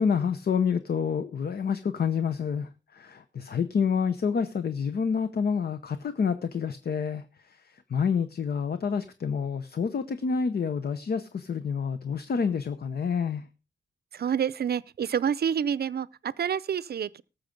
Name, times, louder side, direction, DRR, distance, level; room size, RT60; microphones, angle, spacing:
voice 1, 0.0-7.6 7.9-13.4, left 6 dB, 55° left, 0.8 m, -28 dB
voice 2, 14.1-17.2, right 8 dB, 55° right, 0.6 m, -28 dB
18.5 x 7.2 x 5.2 m
wide cardioid pair, 170°, 20 cm